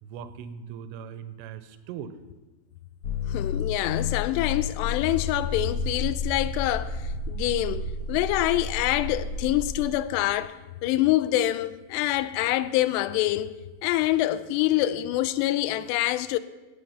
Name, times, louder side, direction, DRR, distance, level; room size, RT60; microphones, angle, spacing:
voice 1, 0.0-2.2, right 8 dB, 85° right, 2.9 m, -39 dB
sound 1, 3.0-9.9, left 3 dB, 65° left, 1.8 m, -31 dB
voice 2, 3.3-7.8 8.1-13.6 13.8-16.4, left 15 dB, 85° left, 2.7 m, -26 dB
17.5 x 7.2 x 5.7 m
omnidirectional pair, 4.9 m